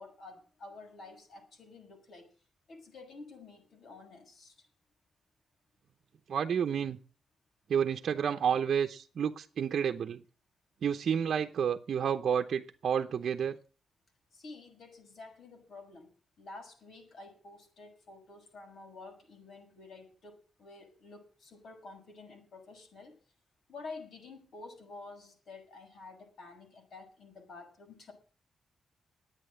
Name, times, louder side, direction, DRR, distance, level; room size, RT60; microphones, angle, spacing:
voice 1, 0.0-2.3 2.7-4.5 14.3-16.1 16.4-23.1 23.7-28.1, left 3 dB, 70° left, 3 dB, 6.3 m, -50 dB
voice 2, 6.3-7.0 7.7-10.2 10.8-13.6, right 7 dB, 65° right, 4 dB, 0.8 m, -30 dB
12.0 x 9.0 x 7.8 m, 0.38 s
wide cardioid pair, 120°, 0 cm